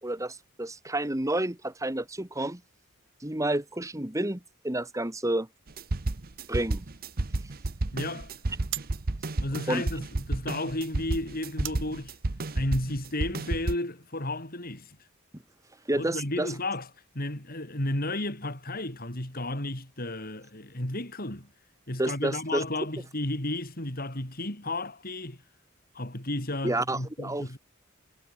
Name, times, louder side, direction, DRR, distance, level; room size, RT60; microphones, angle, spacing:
voice 1, 0.0-2.6 3.2-5.5 6.5-6.8 9.7-9.8 15.9-16.5 22.0-22.8 26.6-27.6, right 1 dB, 15° right, 1.6 m, -30 dB
sound 1, 5.7-13.7, right 2 dB, 45° right, 0.9 m, -31 dB
voice 2, 7.9-8.4 9.4-12.1 12.5-15.0 15.9-16.9 17.1-21.5 21.9-25.4 25.9-27.6, left 1 dB, 45° left, 5.1 m, -33 dB
sound 2, 8.6-14.1, right 14 dB, 65° right, 4.3 m, -46 dB
head